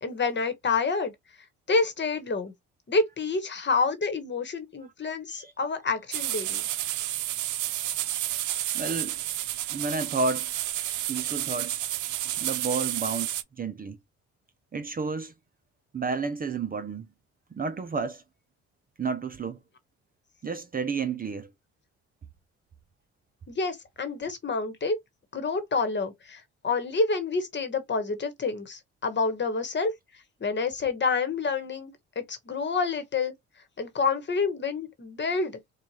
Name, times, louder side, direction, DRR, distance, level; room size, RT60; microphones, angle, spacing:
voice 1, 0.0-1.1 1.7-2.5 2.9-6.6 23.5-25.0 25.3-29.9 30.4-33.3 33.8-35.6, left 4 dB, 35° left, 1.2 m, -28 dB
sound 1, 6.1-13.4, right 13 dB, 75° right, 0.6 m, -31 dB
voice 2, 8.7-9.2 9.7-10.5 11.1-11.8 12.4-14.0 14.7-15.3 15.9-17.1 17.5-18.2 19.0-19.6 20.4-21.5, right 4 dB, 30° right, 0.6 m, -31 dB
4.4 x 2.4 x 3.0 m
cardioid pair, 90°, 30 cm